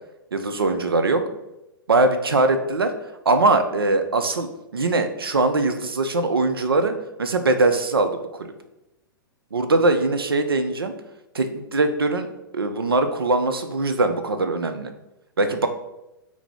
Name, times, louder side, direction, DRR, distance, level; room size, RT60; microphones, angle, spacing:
voice 1, 0.3-1.2 1.9-2.9 3.3-8.5 9.5-10.9 11.3-12.3 12.5-14.9 15.4-15.7, right 2 dB, 85° right, 8 dB, 0.4 m, -21 dB
3.9 x 2.0 x 4.4 m, 0.92 s
figure-of-eight pair, 110°, 12 cm